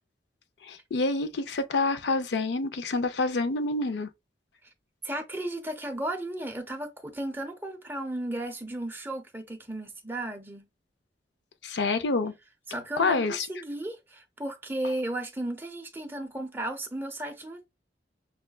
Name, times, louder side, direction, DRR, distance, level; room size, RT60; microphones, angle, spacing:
voice 1, 0.6-4.1 11.6-12.3 13.0-13.5, left 3 dB, 70° left, 0.5 m, -27 dB
voice 2, 5.0-10.7 12.7-17.7, right 1 dB, 10° right, 0.7 m, -34 dB
6.2 x 2.2 x 2.3 m
head